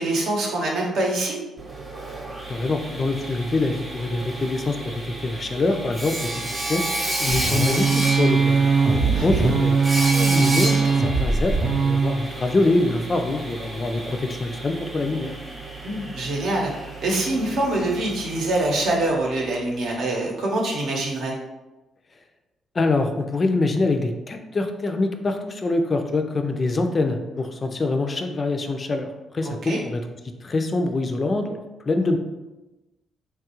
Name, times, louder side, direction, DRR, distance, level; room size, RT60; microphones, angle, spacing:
voice 1, 0.0-1.4 9.1-9.4 15.8-16.7 17.0-21.3 29.4-29.8, right 2 dB, 70° right, -1 dB, 0.8 m, -24 dB
Sawing, 1.6-19.4, right 2 dB, 25° right, 0.7 m, -31 dB
voice 2, 2.5-6.8 7.2-8.7 9.2-15.4 22.7-30.0 30.4-32.2, left 2 dB, 35° left, 5 dB, 0.3 m, -25 dB
sound 1, 7.3-12.2, right 4 dB, 45° right, 0.4 m, -20 dB
3.1 x 2.3 x 2.9 m, 1.1 s
cardioid pair, 90°, 0 cm